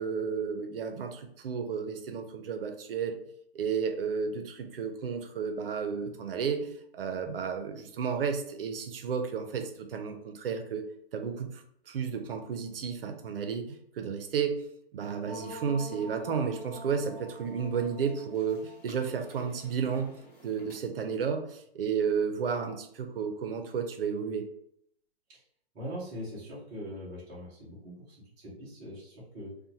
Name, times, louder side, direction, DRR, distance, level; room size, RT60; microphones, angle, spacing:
voice 1, 0.0-3.2 3.5-10.8 11.1-14.6 14.9-24.5, right 6 dB, 65° right, 6 dB, 0.5 m, -32 dB
sound 1, 15.2-20.7, equal, 15° left, 0.9 m, -47 dB
voice 2, 25.7-29.6, equal, 10° right, -8 dB, 0.4 m, -42 dB
2.8 x 2.2 x 2.6 m, 0.72 s
hypercardioid pair, 150°, 31 cm